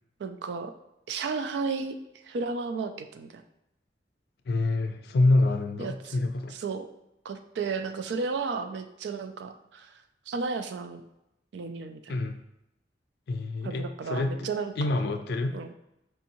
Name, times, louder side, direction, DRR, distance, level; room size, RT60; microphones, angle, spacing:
voice 1, 0.2-0.7 1.1-2.0 2.2-3.4 5.8-6.9 7.2-9.9 10.3-11.0 11.5-12.1 13.6-14.7 15.5-15.7, right 4 dB, 75° right, 8 dB, 0.3 m, -33 dB
voice 2, 4.5-6.6 12.1-12.4 13.3-14.5 14.8-15.6, left 2 dB, 60° left, 6 dB, 0.4 m, -26 dB
4.6 x 2.8 x 2.6 m, 0.86 s
head